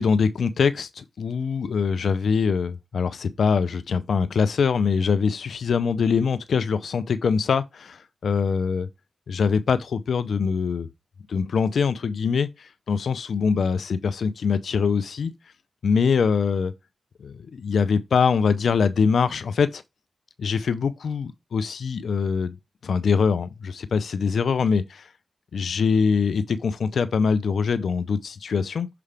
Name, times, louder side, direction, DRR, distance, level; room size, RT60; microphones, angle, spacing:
voice 1, 0.0-8.9 9.3-10.9 11.3-15.3 15.8-16.7 17.2-19.8 20.4-22.5 22.8-25.1 25.5-28.9, left 5 dB, 80° left, 0.5 m, -23 dB
6.8 x 4.8 x 3.4 m
cardioid pair, 45°, 0 cm